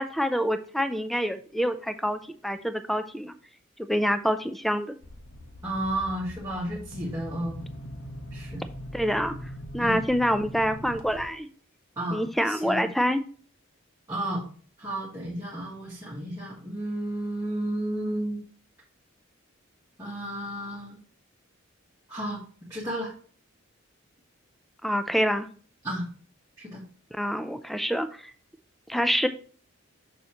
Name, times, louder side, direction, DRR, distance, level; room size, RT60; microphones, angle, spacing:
voice 1, 0.0-3.3 3.8-4.9 8.9-9.4 9.7-11.5 12.1-13.2 24.8-25.5 27.2-28.3 28.9-29.3, equal, ahead, 10 dB, 0.4 m, -26 dB
sound 1, 5.0-11.3, equal, 75° left, 1.2 m, -41 dB
voice 2, 5.6-7.6 8.3-8.6 9.8-10.0 12.0-12.9 14.1-14.4 14.8-18.4 20.0-21.0 22.1-22.4 22.7-23.1 25.8-26.0 26.6-26.8, right 1 dB, 15° right, -6 dB, 1.6 m, -32 dB
6.7 x 6.4 x 2.9 m, 0.43 s
head